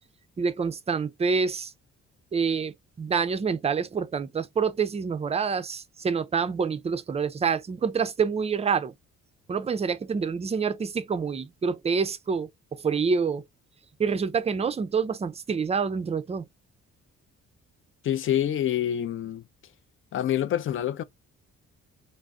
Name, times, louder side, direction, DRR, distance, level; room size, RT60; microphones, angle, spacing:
voice 1, 0.4-1.7 2.3-8.9 9.5-13.4 14.0-16.5, right 5 dB, 20° right, 0.4 m, -27 dB
voice 2, 18.0-19.4 20.1-21.0, left 11 dB, 45° left, 0.4 m, -26 dB
2.5 x 2.0 x 3.5 m
cardioid pair, 90°, 30 cm